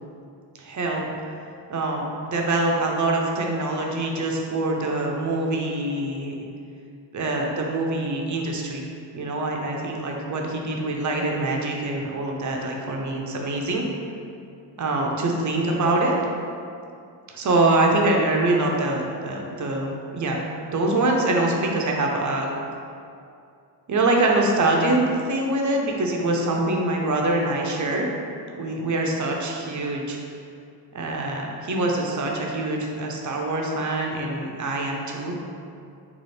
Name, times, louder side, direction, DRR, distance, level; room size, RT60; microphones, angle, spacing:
voice 1, 0.6-1.0 1.7-6.5 7.1-8.9 9.1-13.8 14.8-16.1 17.3-22.5 23.9-28.1 28.6-30.2 30.9-35.3, right 2 dB, 45° right, 0 dB, 0.4 m, -24 dB
4.0 x 2.4 x 3.2 m, 2.5 s
wide cardioid pair, 140°, 45 cm